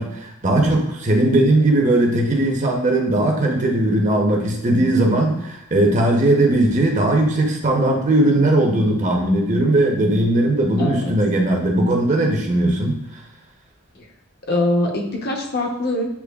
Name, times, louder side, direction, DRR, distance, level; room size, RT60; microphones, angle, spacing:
voice 1, 0.0-13.0, right 1 dB, 35° right, 0 dB, 0.7 m, -18 dB
voice 2, 10.8-11.1 13.9-14.1 14.5-16.1, left 2 dB, 50° left, 1 dB, 0.8 m, -23 dB
8.3 x 2.8 x 2.3 m, 0.86 s
head